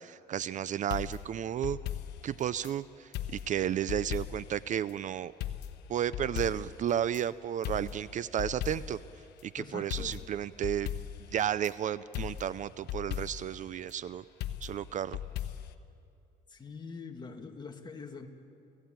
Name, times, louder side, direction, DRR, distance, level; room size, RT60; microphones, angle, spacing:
voice 1, 0.0-1.8 2.2-5.3 5.9-9.0 9.4-10.9 11.3-14.2 14.6-15.2, right 10 dB, 50° right, 17 dB, 0.5 m, -33 dB
sound 1, 0.9-2.7 3.1-4.6 4.9-5.0 5.4-7.2 7.6-9.1 9.4-9.5 9.9-11.7 12.1-13.6 14.4-15.7, left 11 dB, 80° left, 1.1 m, -38 dB
voice 2, 9.6-10.1 16.5-18.3, left 5 dB, 25° left, 3 dB, 2.1 m, -44 dB
29.5 x 16.5 x 9.0 m, 2.6 s
cardioid pair, 110°, 17 cm